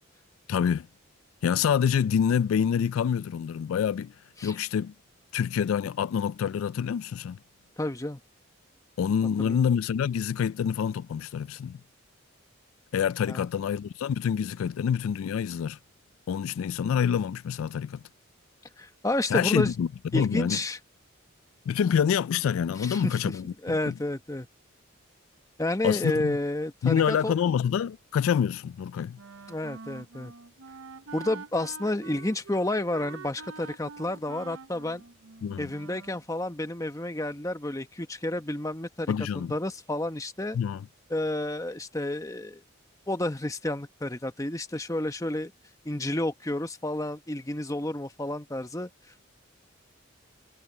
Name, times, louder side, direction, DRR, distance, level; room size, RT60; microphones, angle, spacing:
voice 1, 0.5-0.9 1.4-4.1 4.4-4.9 5.3-7.4 9.0-11.8 12.9-15.8 16.3-18.0 19.3-19.9 20.1-20.6 21.7-23.5 23.8-23.9 25.8-26.4 26.8-29.2 35.4-35.7 39.1-39.5 40.5-40.9, left 8 dB, 80° left, 0.3 m, -26 dB
voice 2, 7.8-8.2 9.4-9.7 13.3-13.4 18.8-19.7 20.1-20.8 22.8-23.4 23.6-24.5 25.6-27.4 29.5-30.3 31.1-35.0 35.6-40.6 41.1-42.6 43.1-45.5 45.8-48.9, left 1 dB, 15° left, 1.0 m, -30 dB
Wind instrument woodwind instrument, 29.2-36.2, right 5 dB, 80° right, 0.8 m, -45 dB
head